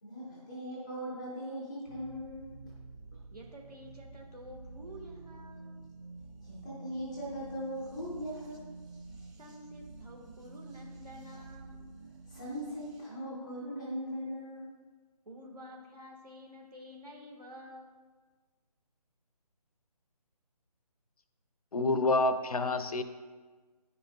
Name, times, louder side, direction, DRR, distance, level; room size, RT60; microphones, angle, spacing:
voice 1, 0.0-2.5 6.4-8.6 12.3-14.7, equal, 10° left, -8 dB, 0.4 m, -39 dB
sound 1, 1.9-13.0, right 3 dB, 30° right, 1.2 m, -49 dB
voice 2, 3.3-5.7 9.4-11.9 15.2-18.0, equal, 75° right, 0 dB, 1.4 m, -50 dB
voice 3, 21.7-23.0, left 2 dB, 65° left, 9 dB, 0.6 m, -28 dB
9.6 x 5.3 x 2.2 m, 1.4 s
figure-of-eight pair, 150°, 20 cm